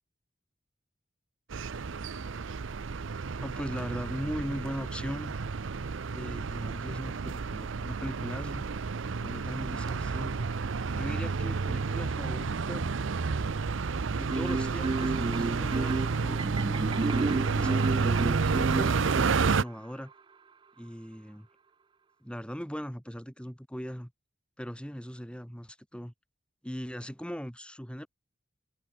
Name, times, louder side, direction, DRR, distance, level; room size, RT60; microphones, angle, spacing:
sound 1, 1.5-19.6, right 4 dB, 90° right, 0.6 m, -30 dB
voice 1, 3.4-5.3 6.1-8.6 9.2-10.5 10.9-13.0 14.1-16.5 17.2-20.1 20.8-21.5 22.2-24.1 24.6-26.1 26.6-28.1, equal, 5° left, 6.8 m, -39 dB
Marimba xylophone, 14.3-19.4, right 3 dB, 25° right, 0.3 m, -31 dB
head